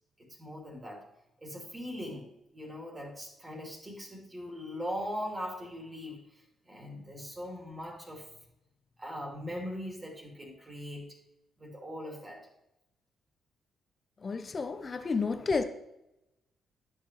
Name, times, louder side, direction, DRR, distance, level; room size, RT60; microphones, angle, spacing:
voice 1, 0.2-1.0 1.4-8.3 9.0-11.2 11.6-12.5, equal, 25° right, 2.8 m, -40 dB
voice 2, 14.2-15.6, left 4 dB, 40° left, 0.8 m, -31 dB
12.5 x 5.7 x 3.2 m
hypercardioid pair, 40°, 0 cm